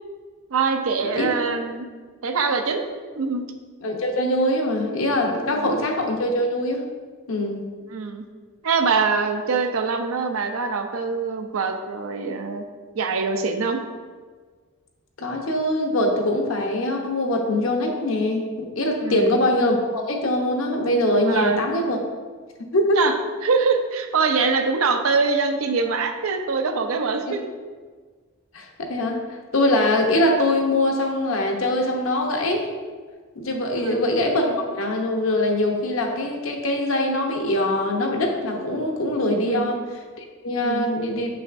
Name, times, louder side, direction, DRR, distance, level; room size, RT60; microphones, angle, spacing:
voice 1, 0.5-1.9 2.2-2.9 3.2-3.4 5.5-5.8 7.9-8.2 8.6-12.6 12.9-13.8 19.0-19.4 21.3-21.6 23.0-23.2 23.4-27.4 33.8-34.0 39.4-39.7 40.6-40.9, right 4 dB, 90° right, 6 dB, 0.6 m, -23 dB
voice 2, 3.8-6.8 7.3-7.6 15.2-22.0 22.6-23.0 27.3-27.4 28.5-32.7 33.4-39.8 40.2-41.3, left 1 dB, 75° left, 2 dB, 0.9 m, -23 dB
6.9 x 5.6 x 2.6 m, 1.5 s
head